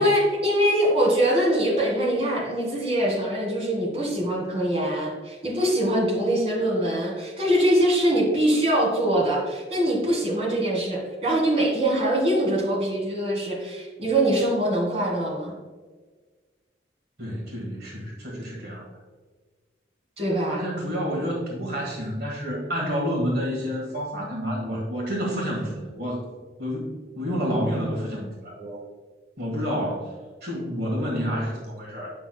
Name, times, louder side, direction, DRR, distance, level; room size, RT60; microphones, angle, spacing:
voice 1, 0.0-15.5 20.2-20.6, right 1 dB, 35° right, -3 dB, 2.0 m, -23 dB
voice 2, 17.2-18.9 20.5-26.2 26.6-28.8 29.4-32.1, equal, 60° right, -3 dB, 1.8 m, -29 dB
8.7 x 6.0 x 2.3 m, 1.4 s
head